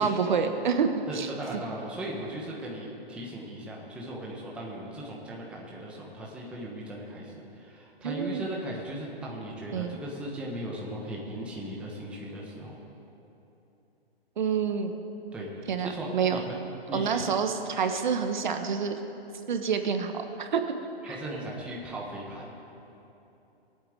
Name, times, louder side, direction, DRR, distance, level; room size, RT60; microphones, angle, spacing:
voice 1, 0.0-0.9 1.1-1.3 8.0-8.5 9.7-10.0 14.4-14.9 15.7-16.4 16.9-19.0 19.5-20.7 21.0-21.2, right 6 dB, 50° right, 6 dB, 1.1 m, -28 dB
voice 2, 1.1-12.8 15.3-16.6 16.9-17.2 21.0-22.5, right 1 dB, 5° right, -4 dB, 1.1 m, -38 dB
20.5 x 8.8 x 7.8 m, 3.0 s
hypercardioid pair, 165°, 31 cm